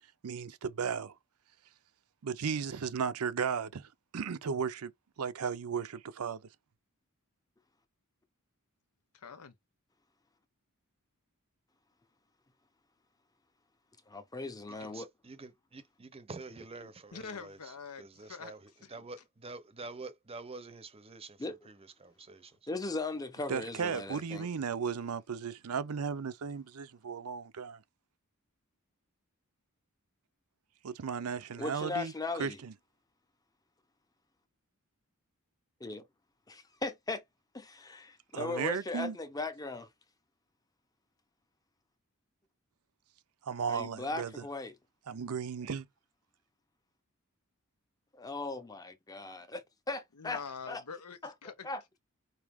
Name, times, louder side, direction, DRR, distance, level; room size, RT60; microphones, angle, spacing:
voice 1, 0.2-1.1 2.2-4.9 5.2-6.4 23.5-27.8 30.8-32.1 32.4-32.7 38.3-39.2 43.5-44.3 45.1-45.9, right 6 dB, 75° right, 0.5 m, -35 dB
voice 2, 9.1-9.6 17.1-18.5 18.8-18.9 50.2-51.7, left 5 dB, 85° left, 0.8 m, -45 dB
voice 3, 14.1-15.1 21.4-21.6 22.7-24.5 31.6-32.6 35.8-36.1 36.5-37.2 37.5-39.9 43.7-44.8 48.1-49.6 49.9-50.4 50.7-50.8 51.2-51.3 51.6-51.8, left 3 dB, 15° left, 0.7 m, -38 dB
voice 4, 14.7-22.6, right 3 dB, 25° right, 0.6 m, -48 dB
4.7 x 2.8 x 3.5 m
head